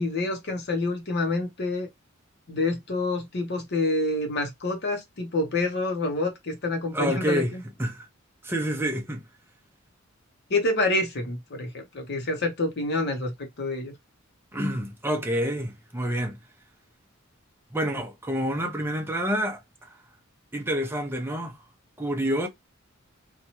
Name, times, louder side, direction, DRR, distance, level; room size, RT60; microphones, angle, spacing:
voice 1, 0.0-1.9 2.5-7.6 10.5-13.9, left 2 dB, 55° left, 0.7 m, -27 dB
voice 2, 6.9-7.5 7.8-8.1 8.4-9.2 14.5-16.4 17.7-19.9 20.5-21.6 22.0-22.5, equal, 10° right, 0.5 m, -28 dB
2.8 x 2.2 x 2.9 m
head